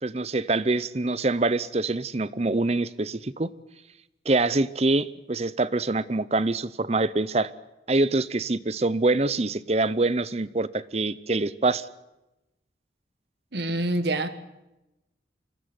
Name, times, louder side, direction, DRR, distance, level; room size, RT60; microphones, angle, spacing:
voice 1, 0.0-3.5 4.3-7.5 7.9-11.9, right 2 dB, 35° right, 0.7 m, -25 dB
voice 2, 13.5-14.3, right 1 dB, 65° right, 1.7 m, -26 dB
25.0 x 15.0 x 9.5 m
head